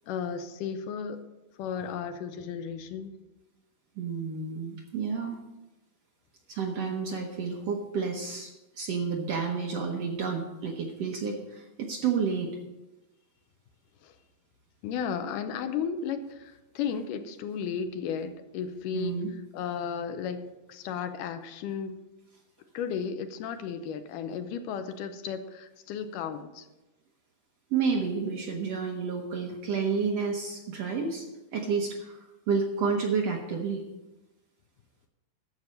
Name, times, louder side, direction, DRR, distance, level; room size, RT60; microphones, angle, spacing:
voice 1, 0.1-1.2 1.6-3.1 14.0-14.1 14.8-19.2 19.5-20.4 20.7-21.9 22.7-26.7, left 7 dB, 80° left, 8 dB, 2.2 m, -34 dB
voice 2, 4.0-5.4 6.5-8.5 8.8-12.5 18.9-19.3 27.7-31.3 31.5-33.8, right 5 dB, 70° right, 1 dB, 1.6 m, -30 dB
11.5 x 7.5 x 5.3 m, 1.0 s
omnidirectional pair, 3.9 m